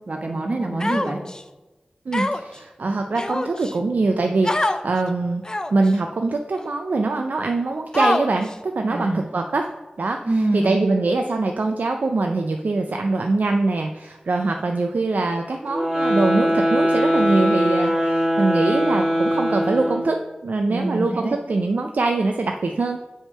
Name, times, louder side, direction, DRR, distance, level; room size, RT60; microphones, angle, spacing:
voice 1, 0.1-1.2 8.9-9.3 10.2-10.7 20.7-21.4, right 2 dB, 55° right, 1 dB, 1.2 m, -25 dB
Human voice, 0.8-1.4 2.1-2.6 3.1-3.7 4.4-4.8 5.4-5.9 6.6-6.7 7.9-8.5, left 2 dB, 25° left, 0.4 m, -24 dB
voice 2, 2.1-5.4 5.7-9.7 10.0-23.0, right 3 dB, 75° right, 4 dB, 0.4 m, -23 dB
sound 1, 15.7-20.2, equal, 10° right, 2.2 m, -21 dB
7.2 x 3.5 x 5.5 m, 1.1 s
wide cardioid pair, 65°, 3 cm